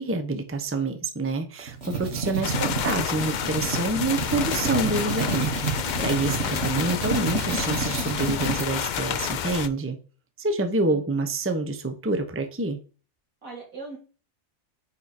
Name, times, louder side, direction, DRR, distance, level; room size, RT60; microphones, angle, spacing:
voice 1, 0.0-10.0 10.4-12.8, right 2 dB, 10° right, 0.8 m, -27 dB
sound 1, 1.6-8.7, right 4 dB, 50° right, 2.1 m, -29 dB
sound 2, 2.4-9.7, left 8 dB, 70° left, 0.4 m, -30 dB
voice 2, 13.4-14.0, right 4 dB, 80° right, 3.8 m, -41 dB
9.7 x 4.7 x 4.3 m
omnidirectional pair, 1.4 m